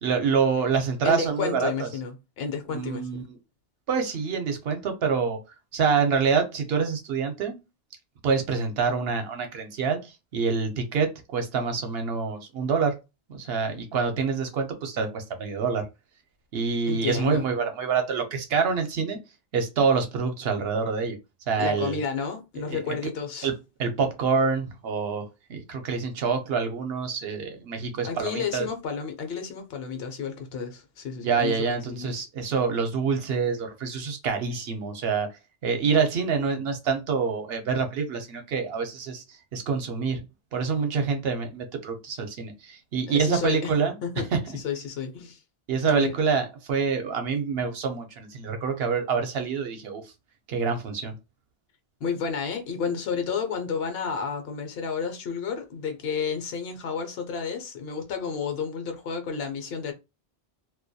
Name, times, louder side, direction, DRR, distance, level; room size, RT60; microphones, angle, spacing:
voice 1, 0.0-1.9 2.7-3.2 3.9-5.4 5.7-7.6 8.2-10.0 10.3-12.9 13.3-15.9 16.5-19.2 19.5-21.2 21.5-22.0 22.7-22.9 23.4-23.5 23.8-25.2 25.5-28.7 31.2-35.3 35.6-39.2 39.5-40.2 40.5-44.0 44.3-44.6 45.7-50.0 50.5-51.1, right 5 dB, 70° right, 0.8 m, -26 dB
voice 2, 1.0-3.3 16.9-17.4 21.6-23.5 28.0-32.3 43.1-43.7 44.0-44.3 44.5-45.4 45.8-46.1 52.0-59.9, left 6 dB, 65° left, 0.8 m, -31 dB
2.2 x 2.1 x 2.6 m
omnidirectional pair, 1.1 m